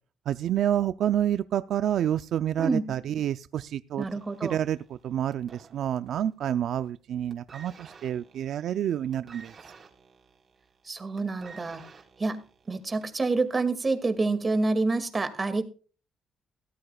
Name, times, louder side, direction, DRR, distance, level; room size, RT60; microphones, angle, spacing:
voice 1, 0.3-4.1 4.4-9.5, right 10 dB, 70° right, 12 dB, 0.4 m, -28 dB
voice 2, 2.6-2.9 4.0-4.6 10.8-11.9 12.2-15.6, right 3 dB, 30° right, 9 dB, 2.1 m, -28 dB
sound 1, 4.0-6.3 6.6-7.0 7.3-13.3 14.1-14.2, right 5 dB, 45° right, 3.8 m, -52 dB
17.0 x 13.5 x 2.3 m, 0.38 s
cardioid pair, 90°, 0 cm